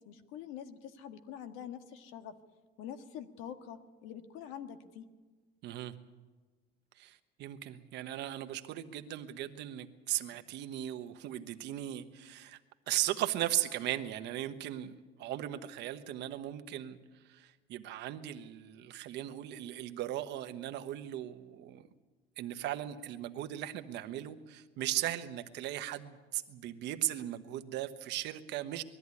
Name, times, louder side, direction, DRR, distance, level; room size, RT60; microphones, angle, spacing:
voice 1, 0.0-2.3 2.8-5.1, left 9 dB, 85° left, 8 dB, 1.6 m, -45 dB
voice 2, 5.6-5.9 6.9-12.6 12.9-14.9 15.2-17.0 17.2-21.8 22.4-28.8, right 13 dB, 65° right, 9 dB, 1.2 m, -37 dB
21.0 x 14.0 x 9.8 m, 1.3 s
cardioid pair, 170°, 20 cm